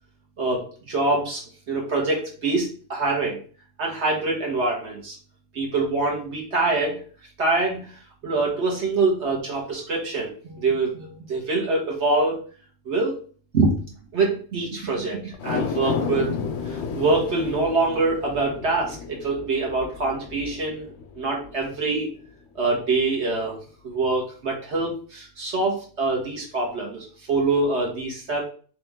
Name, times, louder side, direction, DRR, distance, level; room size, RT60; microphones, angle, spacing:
voice 1, 0.4-3.4 3.8-5.2 5.5-7.0 7.4-7.9 8.2-12.4 12.8-13.2 13.5-13.8 14.1-16.4 16.7-20.8 21.1-22.1 22.5-23.6 23.8-28.4, right 3 dB, 70° right, -2 dB, 1.6 m, -25 dB
sound 1, 15.3-21.8 22.2-22.3, left 6 dB, 70° left, 0.8 m, -32 dB
3.4 x 3.1 x 3.5 m, 0.42 s
omnidirectional pair, 1.2 m